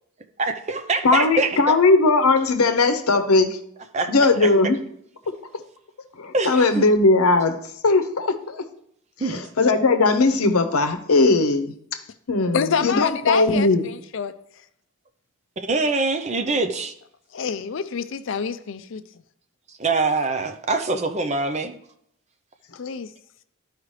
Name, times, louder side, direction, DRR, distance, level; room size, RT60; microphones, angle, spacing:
voice 1, 0.4-1.8 3.9-4.5 6.3-6.9 9.2-9.4 15.6-16.9 19.8-21.8, right 3 dB, 30° right, 0.6 m, -24 dB
voice 2, 1.0-3.6 4.1-4.8 5.3-5.4 6.2-7.6 7.8-8.6 9.2-11.7 12.3-13.9, left 3 dB, 85° left, 0.8 m, -19 dB
voice 3, 12.5-14.3 17.3-19.0 22.8-23.1, left 6 dB, 60° left, 0.4 m, -27 dB
12.0 x 4.9 x 3.2 m
head